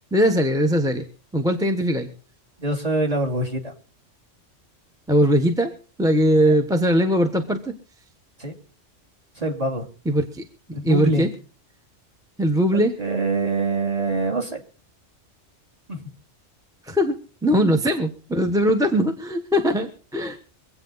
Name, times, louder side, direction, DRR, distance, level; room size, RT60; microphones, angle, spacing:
voice 1, 0.1-1.0 1.3-2.1 5.1-5.7 6.0-7.7 10.0-10.4 10.8-11.3 12.4-12.9 16.9-17.2 17.4-20.4, equal, 5° right, 4 dB, 1.1 m, -20 dB
voice 2, 2.6-3.7 6.5-6.6 8.4-8.5 9.4-9.8 10.7-11.3 13.0-14.6 15.9-16.1, right 2 dB, 30° right, -1 dB, 2.8 m, -24 dB
24.5 x 8.6 x 4.0 m, 0.38 s
omnidirectional pair, 1.3 m